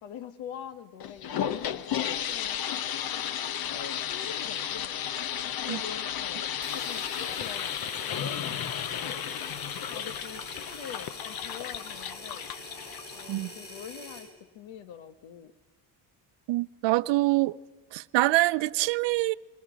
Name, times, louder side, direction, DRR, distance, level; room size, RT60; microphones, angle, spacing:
voice 1, 0.0-2.7 3.1-5.0 5.6-9.5 9.9-12.5 13.1-15.5, left 8 dB, 70° left, 1.5 m, -45 dB
sound 1, 1.0-13.5, left 9 dB, 50° left, 0.9 m, -33 dB
sound 2, 6.6-14.3, left 1 dB, 20° left, 5.7 m, -44 dB
voice 2, 16.5-17.5 17.9-19.3, right 19 dB, 65° right, 0.6 m, -25 dB
30.0 x 21.5 x 5.2 m
cardioid pair, 140°, 47 cm